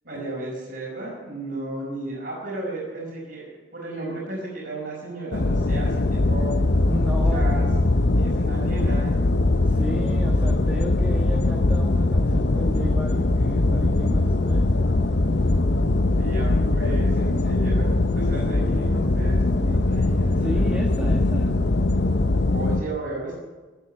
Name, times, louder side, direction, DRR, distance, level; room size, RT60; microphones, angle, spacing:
voice 1, 0.0-6.6 7.3-7.7 8.1-9.2 16.2-17.9 18.1-20.7 20.9-21.0 22.5-23.3, right 2 dB, 55° right, -6 dB, 5.6 m, -34 dB
sound 1, 5.3-22.8, left 2 dB, 60° left, 0.6 m, -21 dB
voice 2, 6.9-7.8 9.6-14.7 18.5-18.8 20.4-21.5, equal, 10° right, -1 dB, 1.6 m, -33 dB
16.5 x 8.8 x 9.8 m, 1.3 s
head